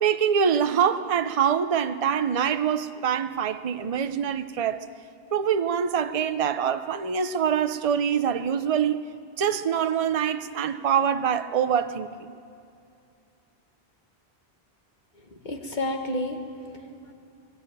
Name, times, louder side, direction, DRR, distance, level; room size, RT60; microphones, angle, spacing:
voice 1, 0.0-4.8 5.3-9.0 9.4-12.3, right 8 dB, 40° right, 0.7 m, -24 dB
voice 2, 15.1-17.1, left 1 dB, 45° left, 1.9 m, -32 dB
21.0 x 17.5 x 9.1 m
omnidirectional pair, 1.1 m